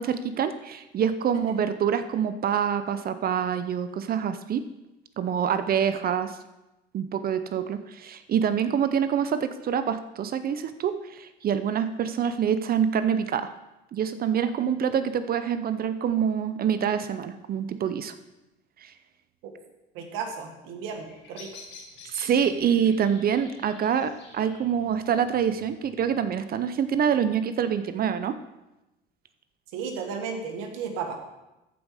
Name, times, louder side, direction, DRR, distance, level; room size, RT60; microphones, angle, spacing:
voice 1, 0.0-4.6 5.2-6.4 6.9-13.5 13.9-18.1 18.8-18.9 22.0-28.4, right 8 dB, 45° right, 11 dB, 0.7 m, -26 dB
voice 2, 19.9-21.5 29.7-31.2, right 5 dB, 80° right, 4 dB, 1.7 m, -34 dB
Bird vocalization bird call bird song, 20.8-26.8, left 4 dB, 65° left, 4.1 m, -50 dB
14.0 x 5.3 x 4.9 m, 0.98 s
supercardioid pair, 85°, 21 cm